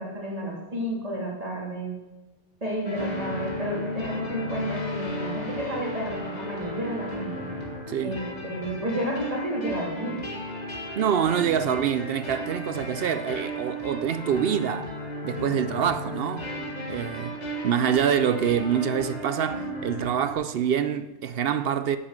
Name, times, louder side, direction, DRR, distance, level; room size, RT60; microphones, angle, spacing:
voice 1, 0.0-1.9 2.6-7.5 8.0-10.2, equal, 30° right, 3.3 m, -31 dB
sound 1, 2.8-20.3, equal, 40° left, 1.7 m, -34 dB
voice 2, 7.9-8.2 11.0-14.9 15.2-16.5 16.9-17.4 17.6-22.0, right 8 dB, 65° right, 0.7 m, -26 dB
9.9 x 7.1 x 7.4 m
omnidirectional pair, 1.2 m